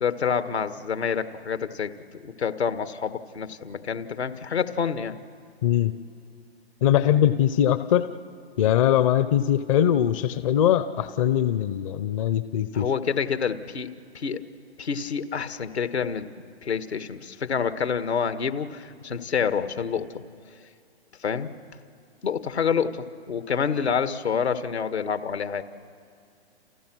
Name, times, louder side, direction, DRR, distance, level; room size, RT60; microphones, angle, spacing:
voice 1, 0.0-1.9 2.2-5.2 12.7-13.9 14.1-14.4 14.8-16.3 16.6-20.1 21.2-21.5 22.2-25.6, left 6 dB, 75° left, 10 dB, 1.8 m, -27 dB
voice 2, 5.6-5.9 6.8-8.1 8.6-12.9, left 10 dB, 30° left, 12 dB, 0.7 m, -21 dB
30.0 x 29.0 x 6.2 m, 2.4 s
hypercardioid pair, 135°, 33 cm